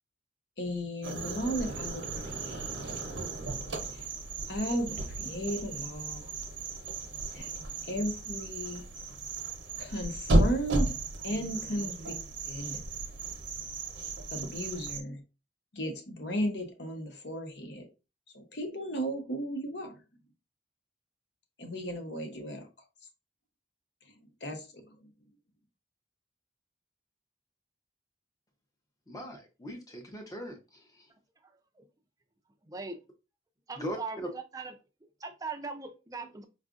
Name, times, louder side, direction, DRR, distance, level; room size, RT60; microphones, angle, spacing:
voice 1, 0.6-3.0 3.9-4.1 4.5-6.3 7.3-7.5 7.8-8.9 9.8-10.9 11.2-12.2 12.4-12.8 14.3-15.2 15.7-17.9 18.3-19.9 21.6-22.7 24.4-25.1, equal, 65° left, 5 dB, 0.8 m, -35 dB
sound 1, 1.0-15.0, right 2 dB, 85° right, 0.7 m, -34 dB
voice 2, 29.1-31.1 33.8-34.3, equal, 20° left, 3 dB, 0.7 m, -40 dB
voice 3, 32.7-33.0 33.7-34.7 35.2-36.4, right 4 dB, 20° right, 6 dB, 0.4 m, -40 dB
4.7 x 2.4 x 2.4 m, 0.29 s
head